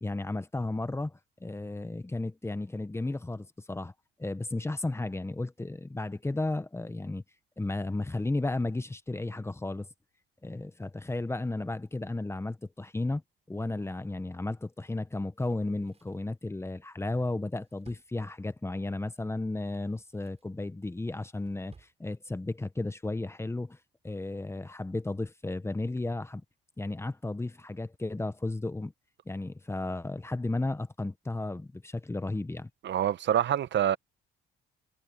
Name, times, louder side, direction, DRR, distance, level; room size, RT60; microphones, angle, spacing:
voice 1, 0.0-3.9 4.2-7.2 7.6-9.9 10.4-13.2 13.5-23.8 24.0-26.4 26.8-28.9 29.3-32.7, left 2 dB, 15° left, 1.0 m, -34 dB
Drawer open or close, 15.5-18.8 19.7-20.6 21.0-22.0 22.3-22.4, right 4 dB, 30° right, 7.6 m, -61 dB
voice 2, 32.8-34.0, right 10 dB, 65° right, 1.0 m, -26 dB
cardioid pair, 90°, 20 cm